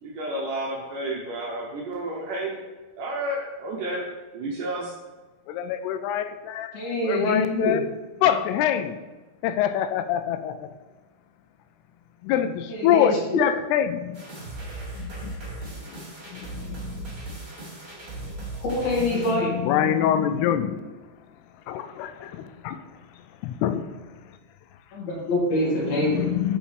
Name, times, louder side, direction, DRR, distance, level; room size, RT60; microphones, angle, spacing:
voice 1, 0.0-2.6 3.0-4.0 4.3-4.9, right 1 dB, 75° right, -2 dB, 2.0 m, -31 dB
voice 2, 5.5-6.7 7.0-7.8 8.2-9.0 9.4-10.7 12.2-14.2 15.0-15.3 15.9-16.0 16.3-17.2 19.1-20.8 21.7-22.8 23.4-23.8 26.0-26.6, left 10 dB, 90° left, 9 dB, 2.6 m, -25 dB
voice 3, 6.7-7.8 12.7-13.2 18.6-19.6 24.9-26.2, left 1 dB, 65° left, -5 dB, 3.7 m, -25 dB
sound 1, 14.1-19.3, right 2 dB, 35° right, 1.5 m, -37 dB
8.9 x 5.6 x 3.3 m, 1.2 s
omnidirectional pair, 4.6 m